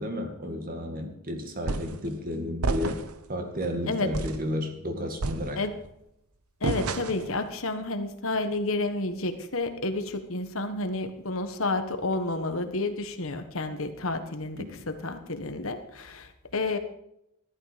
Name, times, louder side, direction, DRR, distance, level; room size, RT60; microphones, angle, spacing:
voice 1, 0.0-3.0 3.3-5.6 14.6-14.9, left 1 dB, 40° right, 5 dB, 2.2 m, -32 dB
sound 1, 1.7-2.0 2.6-3.2 3.6-3.8 4.1-4.5 5.2-5.9 6.6-7.3, right 3 dB, 90° right, 0.9 m, -30 dB
voice 2, 6.6-16.8, left 2 dB, 65° left, 8 dB, 1.4 m, -30 dB
14.5 x 12.0 x 5.1 m, 0.79 s
head